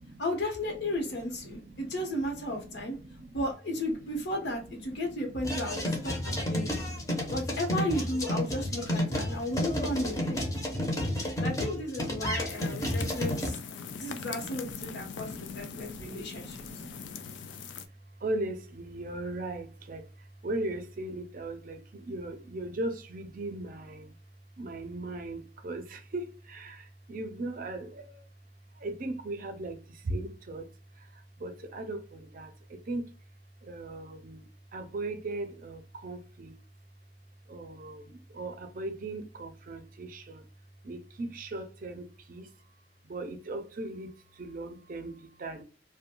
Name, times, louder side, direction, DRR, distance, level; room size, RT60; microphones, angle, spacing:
voice 1, 0.2-3.0 3.3-6.8 7.3-10.4 11.4-13.6 13.9-16.6, left 1 dB, 70° left, 0.9 m, -34 dB
voice 2, 1.5-1.9 2.5-3.4 6.1-7.3 8.4-8.5 9.2-10.0 10.5-11.0 14.8-17.1 18.2-20.0 20.4-24.1 24.6-28.2 28.8-29.8 30.0-30.7 31.4-33.1 33.6-34.4 34.7-36.6 37.5-40.4 40.8-42.5 43.1-44.1 44.4-45.6, right 2 dB, 50° right, 0.5 m, -38 dB
sound 1, 5.4-13.5, left 1 dB, 20° left, 0.7 m, -31 dB
sound 2, 12.5-17.9, left 6 dB, 90° left, 0.3 m, -42 dB
2.5 x 2.1 x 2.8 m
head